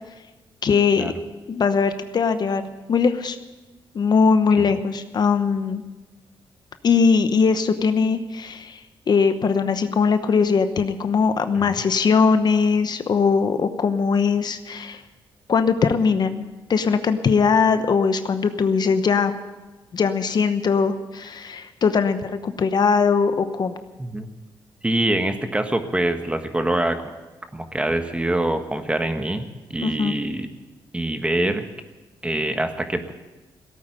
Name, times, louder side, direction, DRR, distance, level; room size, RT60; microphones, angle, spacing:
voice 1, 0.6-1.1 1.5-2.6 2.9-3.4 3.9-5.8 6.8-8.8 9.1-15.0 15.5-16.4 16.7-19.3 19.9-23.8 29.8-30.2, left 5 dB, 50° left, 9 dB, 1.0 m, -20 dB
voice 2, 24.8-27.0 27.5-30.5 30.9-31.6 32.2-33.1, right 1 dB, 10° right, 7 dB, 1.4 m, -24 dB
16.5 x 8.9 x 9.0 m, 1.2 s
cardioid pair, 95°, 9 cm